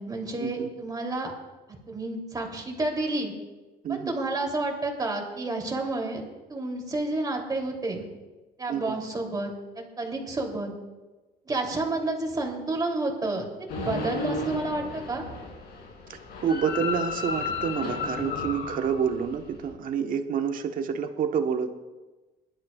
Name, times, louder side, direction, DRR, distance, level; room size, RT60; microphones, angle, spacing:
voice 1, 0.0-1.3 1.7-3.3 3.9-6.2 6.5-8.0 8.6-10.7 11.4-15.2, right 2 dB, 20° right, 0 dB, 3.2 m, -30 dB
sound 1, 13.7-19.7, left 3 dB, 70° left, 3.2 m, -33 dB
voice 2, 16.4-21.7, right 7 dB, 55° right, 6 dB, 1.2 m, -28 dB
22.0 x 12.0 x 2.4 m, 1.2 s
cardioid pair, 110°, 17 cm